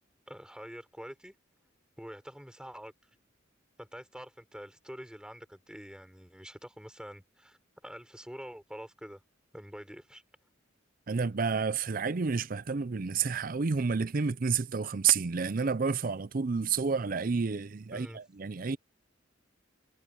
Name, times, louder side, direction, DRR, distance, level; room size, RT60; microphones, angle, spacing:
voice 1, 0.3-1.3 2.0-2.9 3.8-9.2 9.5-10.2 17.9-18.2, equal, 5° right, 4.0 m, -46 dB
voice 2, 11.1-18.8, right 5 dB, 45° right, 0.5 m, -30 dB
head